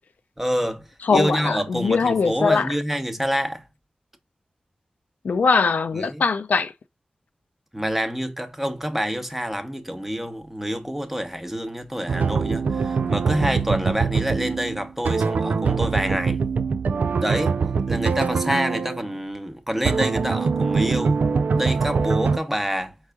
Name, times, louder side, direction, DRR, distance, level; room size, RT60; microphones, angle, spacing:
voice 1, 0.4-3.6 5.9-6.2 7.7-16.4 17.2-17.6 17.9-21.2 21.5-22.9, equal, 10° right, 0.9 m, -27 dB
voice 2, 1.1-2.7 5.2-6.7, left 4 dB, 90° left, 0.4 m, -21 dB
sound 1, 12.1-19.1 19.8-22.4, right 5 dB, 80° right, 0.3 m, -23 dB
4.6 x 4.5 x 2.2 m
wide cardioid pair, 75°, 3 cm